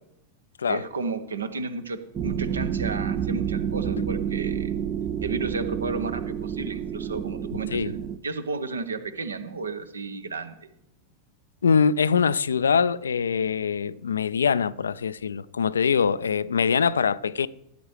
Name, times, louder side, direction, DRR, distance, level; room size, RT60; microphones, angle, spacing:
voice 1, 0.7-4.7 5.2-10.6, right 4 dB, 75° right, 0.9 m, -33 dB
sound 1, 2.1-8.2, right 8 dB, 25° right, 0.6 m, -29 dB
voice 2, 11.6-17.5, left 6 dB, 70° left, 0.3 m, -23 dB
15.5 x 8.8 x 3.3 m
figure-of-eight pair, 90°, 0 cm